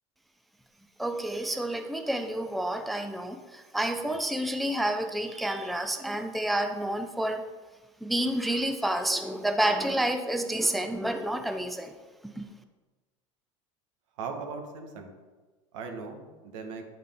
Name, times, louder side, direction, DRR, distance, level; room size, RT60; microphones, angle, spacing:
voice 1, 1.0-7.4 8.0-11.9 12.4-12.5, right 1 dB, ahead, 7 dB, 0.4 m, -29 dB
voice 2, 14.2-15.1 15.7-16.8, right 4 dB, 75° right, 4 dB, 1.1 m, -38 dB
9.2 x 3.7 x 3.6 m, 1.3 s
hypercardioid pair, 90°, 16 cm